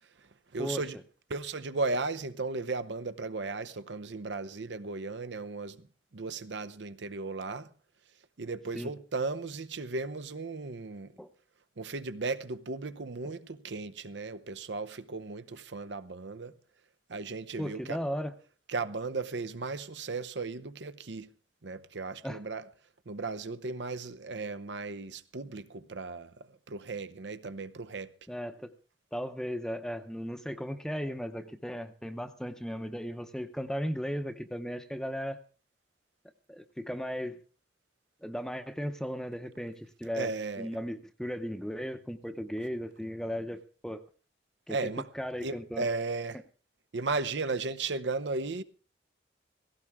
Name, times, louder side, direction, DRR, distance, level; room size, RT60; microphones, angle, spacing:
voice 1, 0.5-1.0 1.3-5.8 6.1-7.7 8.4-11.1 11.8-16.5 17.1-18.0 18.7-21.3 21.6-22.6 23.1-26.3 26.7-28.1 40.2-40.7 44.7-45.1 45.4-46.4 46.9-48.6, right 3 dB, 75° right, 0.8 m, -35 dB
voice 2, 17.6-18.3 22.2-22.4 28.3-28.7 29.1-35.4 36.5-37.4 38.2-44.0 44.7-45.9, equal, 5° left, 0.7 m, -36 dB
17.0 x 16.5 x 3.6 m
head